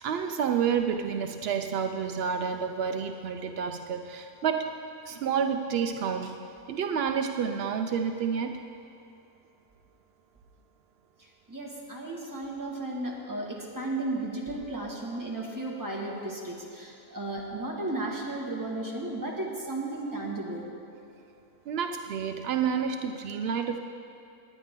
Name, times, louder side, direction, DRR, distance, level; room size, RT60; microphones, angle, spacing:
voice 1, 0.0-4.8 5.1-8.6 21.7-23.8, right 7 dB, 80° right, 6 dB, 0.5 m, -29 dB
voice 2, 11.5-20.6, right 2 dB, 15° right, -3 dB, 1.7 m, -34 dB
19.0 x 10.0 x 3.7 m, 2.6 s
omnidirectional pair, 1.6 m